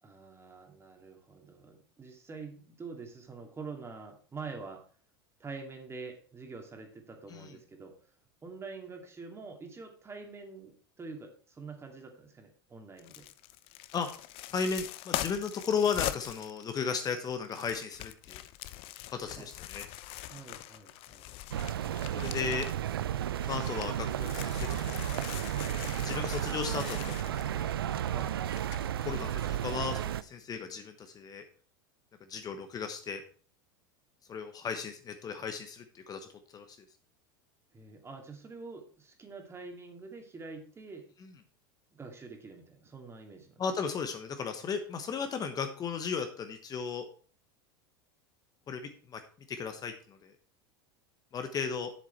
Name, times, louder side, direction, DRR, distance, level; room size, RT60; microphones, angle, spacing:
voice 1, 0.0-4.8 5.4-8.1 8.4-13.3 19.4-19.5 20.3-21.3 28.0-28.4 37.7-41.0 41.9-43.6, right 4 dB, 20° right, 3 dB, 2.4 m, -46 dB
sound 1, 13.0-22.9 23.3-29.3 29.7-29.8, left 14 dB, 50° left, 0.7 m, -42 dB
voice 2, 14.5-18.4 19.1-19.9 22.1-22.7 23.5-25.0 26.0-27.7 28.8-29.3 29.6-31.4 32.3-33.2 34.3-36.8 41.2-41.3 43.6-47.1 48.7-49.2 49.5-50.3 51.3-51.9, left 6 dB, 30° left, 7 dB, 1.1 m, -35 dB
sound 2, 21.5-30.2, right 11 dB, 85° right, 0.5 m, -33 dB
7.6 x 7.4 x 4.4 m, 0.42 s
hypercardioid pair, 90°, 12 cm